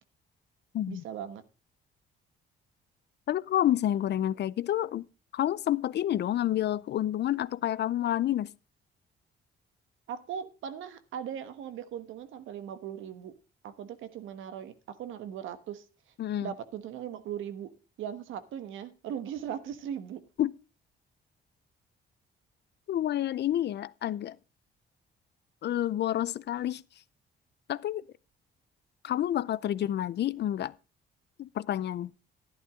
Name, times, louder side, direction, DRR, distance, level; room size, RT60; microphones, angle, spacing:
voice 1, 0.9-1.4 10.1-13.4 13.6-15.8 16.4-17.7 18.0-20.2, right 9 dB, 85° right, 1.2 m, -39 dB
voice 2, 3.3-5.0 5.3-8.5 16.2-16.5 20.4-20.5 22.9-24.4 25.6-26.8 27.7-28.0 29.0-30.7 31.4-32.1, left 12 dB, 60° left, 0.5 m, -29 dB
11.5 x 11.0 x 3.6 m
cardioid pair, 90°, 20 cm